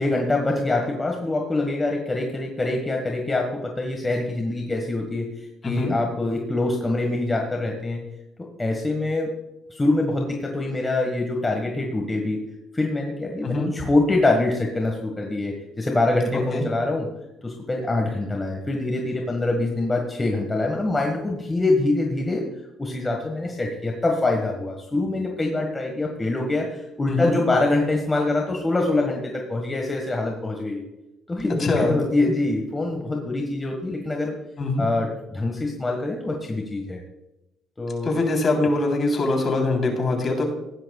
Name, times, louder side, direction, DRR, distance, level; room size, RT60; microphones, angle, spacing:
voice 1, 0.0-8.0 8.4-9.3 9.7-12.4 12.7-17.1 17.4-22.5 22.8-30.8 31.3-34.3 34.8-37.0 37.8-38.1, left 2 dB, 20° left, 1 dB, 1.7 m, -24 dB
voice 2, 5.6-6.0 13.4-13.7 16.3-16.6 27.1-27.4 31.6-32.0 34.6-34.8 38.0-40.5, left 2 dB, 40° left, 2 dB, 3.7 m, -23 dB
16.0 x 11.0 x 2.4 m, 0.91 s
cardioid pair, 95°, 0 cm